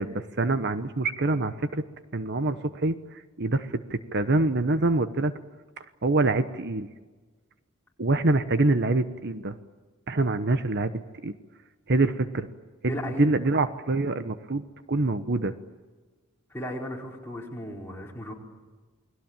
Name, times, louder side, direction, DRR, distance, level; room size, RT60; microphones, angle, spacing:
voice 1, 0.0-1.8 2.1-3.0 3.4-5.3 6.0-6.9 8.0-9.6 10.1-11.3 11.9-12.5 12.8-15.5, right 2 dB, 55° right, 10 dB, 1.1 m, -25 dB
voice 2, 12.9-13.3 16.5-18.3, equal, 10° left, -2 dB, 4.9 m, -35 dB
29.0 x 21.5 x 9.0 m, 1.3 s
head